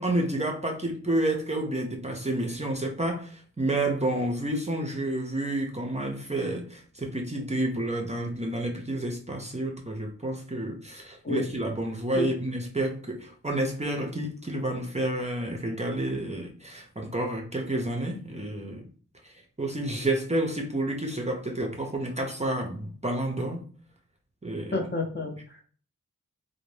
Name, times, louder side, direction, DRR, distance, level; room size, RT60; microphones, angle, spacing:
voice 1, 0.0-18.9 19.2-19.3 19.6-23.6 24.4-24.9, right 1 dB, 20° right, 0.5 m, -30 dB
voice 2, 24.7-25.6, left 2 dB, 35° left, 0.6 m, -30 dB
2.5 x 2.1 x 3.2 m
wide cardioid pair, 50°, 32 cm